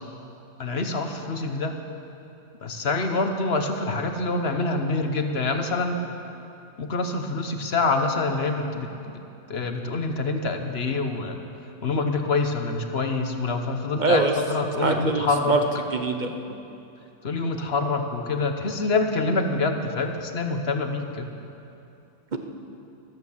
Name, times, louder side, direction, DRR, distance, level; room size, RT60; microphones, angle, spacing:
voice 1, 0.6-1.8 2.6-6.0 6.8-8.9 9.5-11.4 11.8-15.6 17.2-21.3, left 3 dB, 60° left, 5 dB, 1.2 m, -26 dB
voice 2, 14.0-14.3 14.8-15.6 15.9-16.4 22.3-22.4, right 4 dB, 40° right, 5 dB, 1.0 m, -23 dB
14.5 x 12.5 x 7.2 m, 2.8 s
omnidirectional pair, 1.3 m